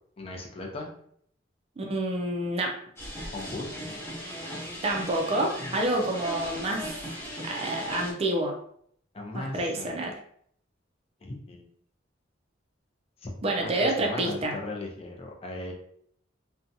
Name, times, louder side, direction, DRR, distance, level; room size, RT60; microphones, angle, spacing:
voice 1, 0.2-1.0 3.3-4.0 5.6-6.1 9.1-9.9 11.2-11.7 13.2-15.7, left 2 dB, 30° left, -1 dB, 0.5 m, -38 dB
voice 2, 1.8-2.7 4.8-6.9 7.4-8.6 9.3-10.1 13.4-14.6, right 1 dB, 30° right, 1 dB, 0.4 m, -28 dB
sound 1, 3.0-8.1, equal, 15° left, 1.0 m, -38 dB
2.6 x 2.2 x 2.6 m, 0.66 s
head